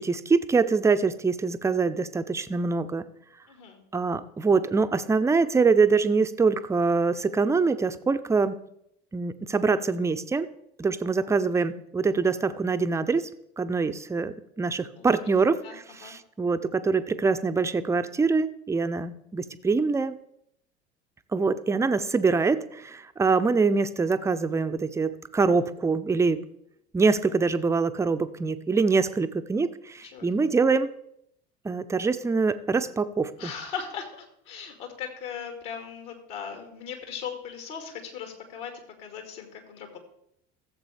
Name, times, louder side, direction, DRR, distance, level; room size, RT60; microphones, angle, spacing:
voice 1, 0.0-3.0 3.9-8.5 9.1-10.5 10.8-13.3 13.6-20.2 21.3-26.4 26.9-30.9 31.6-33.5, right 4 dB, 10° right, 11 dB, 0.5 m, -24 dB
voice 2, 3.5-3.8 11.0-11.1 13.8-13.9 15.0-15.2 15.6-16.1 28.9-29.1 30.0-30.3 33.4-38.7 39.0-40.0, left 7 dB, 60° left, 5 dB, 2.0 m, -38 dB
15.0 x 7.4 x 3.3 m, 0.75 s
figure-of-eight pair, 70°, 33 cm